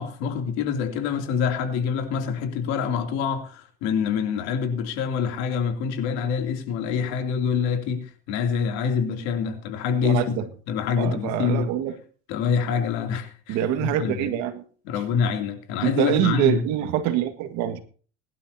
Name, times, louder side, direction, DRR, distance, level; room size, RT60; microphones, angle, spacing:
voice 1, 0.0-10.3 10.7-11.7 12.3-14.4 14.8-16.6, left 6 dB, 65° left, 2.9 m, -26 dB
voice 2, 10.0-10.4 11.0-11.9 13.5-14.6 15.1-15.2 15.8-17.8, right 11 dB, 65° right, 1.9 m, -25 dB
22.5 x 11.5 x 2.8 m
supercardioid pair, 125°, 29 cm